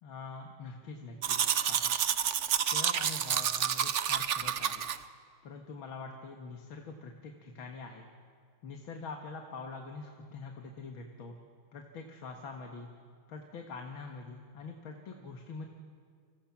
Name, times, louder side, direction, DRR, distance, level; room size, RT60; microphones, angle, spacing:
voice 1, 0.0-1.4 1.7-2.0 2.6-4.9 5.4-8.1 8.6-11.4 11.7-12.9 13.3-15.7, left 4 dB, 70° left, 3 dB, 2.3 m, -44 dB
Domestic sounds home sounds, 1.2-5.0, right 8 dB, 85° right, 0.6 m, -29 dB
30.0 x 26.5 x 6.0 m, 2.1 s
omnidirectional pair, 2.4 m